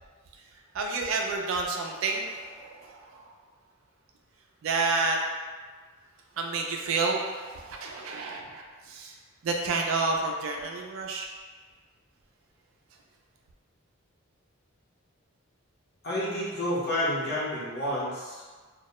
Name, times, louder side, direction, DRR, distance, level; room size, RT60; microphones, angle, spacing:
voice 1, 0.3-3.4 4.6-5.2 6.4-11.3, right 3 dB, 65° right, 1 dB, 0.3 m, -30 dB
voice 2, 16.0-18.4, left 1 dB, 50° left, -7 dB, 0.7 m, -29 dB
2.2 x 2.0 x 2.9 m, 1.4 s
head